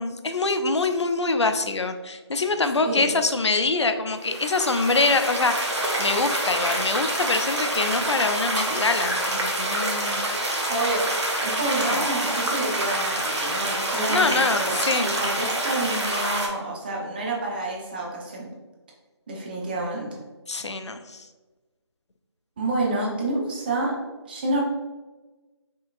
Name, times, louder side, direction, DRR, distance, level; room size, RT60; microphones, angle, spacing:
voice 1, 0.0-10.5 11.8-12.1 14.1-15.1 20.5-21.3, left 3 dB, 75° left, 8 dB, 0.5 m, -25 dB
sound 1, 4.2-16.5, right 1 dB, 75° right, 1.2 m, -27 dB
voice 2, 10.7-11.1 11.4-18.5 19.3-20.1 22.6-23.9 24.3-24.6, right 2 dB, 20° right, -2 dB, 0.7 m, -28 dB
5.7 x 3.6 x 2.4 m, 1.2 s
figure-of-eight pair, 160°, 15 cm